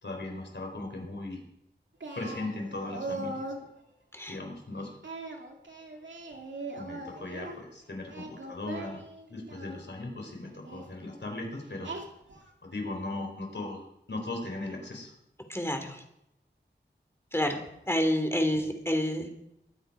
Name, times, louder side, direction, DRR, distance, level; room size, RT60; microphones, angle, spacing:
voice 1, 0.0-1.4 2.2-3.5 4.3-4.9 6.8-9.0 9.3-12.0 12.6-15.1 18.5-18.7, left 2 dB, 70° left, 1 dB, 4.5 m, -38 dB
Singing, 2.0-3.7 5.0-7.6 8.0-9.8 10.6-10.9 11.8-12.5, right 2 dB, 80° right, 2.3 m, -40 dB
voice 2, 15.5-16.0 17.3-17.6 17.9-19.3, equal, 15° left, 6 dB, 2.9 m, -28 dB
22.0 x 8.9 x 5.0 m, 0.81 s
wide cardioid pair, 60°, 19 cm